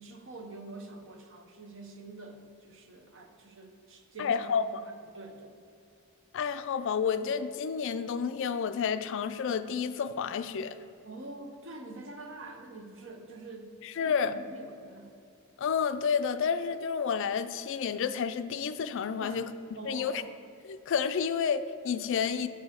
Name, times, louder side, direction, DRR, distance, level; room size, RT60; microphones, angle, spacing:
voice 1, 0.0-5.6 11.0-13.7 14.0-15.1 19.2-19.4 19.7-20.3, right 2 dB, 55° right, 4 dB, 0.7 m, -46 dB
voice 2, 4.2-4.9 6.3-10.8 13.8-14.4 15.6-19.5 19.8-20.2 20.6-22.5, left 6 dB, 55° left, 11 dB, 0.3 m, -30 dB
7.2 x 4.9 x 5.6 m, 2.5 s
head